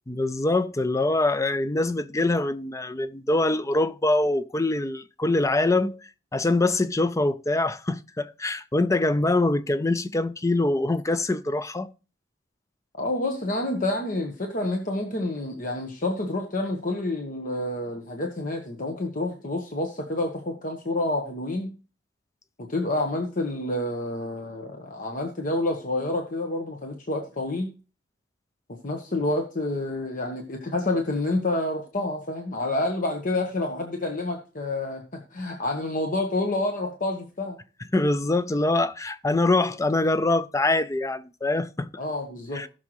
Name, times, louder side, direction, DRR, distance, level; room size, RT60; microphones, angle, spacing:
voice 1, 0.1-6.0 6.3-11.9 37.9-41.9 42.5-42.7, left 2 dB, 15° left, 0.5 m, -24 dB
voice 2, 13.0-21.7 22.6-27.7 28.8-37.6 42.0-42.6, left 2 dB, 45° left, 1.2 m, -28 dB
18.0 x 6.3 x 3.1 m
head